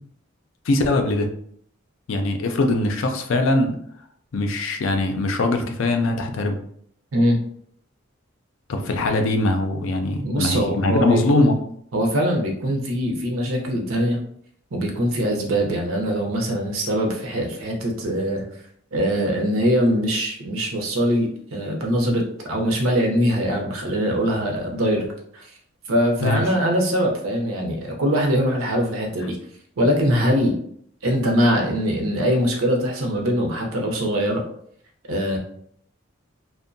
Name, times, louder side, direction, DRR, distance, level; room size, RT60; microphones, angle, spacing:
voice 1, 0.7-1.3 2.1-3.8 4.3-6.6 8.7-11.6 26.2-26.4, left 2 dB, 70° left, 5 dB, 0.4 m, -21 dB
voice 2, 10.2-11.5 11.9-14.2 14.7-18.5 18.9-25.1 25.3-25.5 25.9-29.4 29.8-30.6 31.0-34.4 35.1-35.4, equal, 90° right, 1 dB, 0.6 m, -22 dB
2.6 x 2.1 x 2.5 m, 0.65 s
head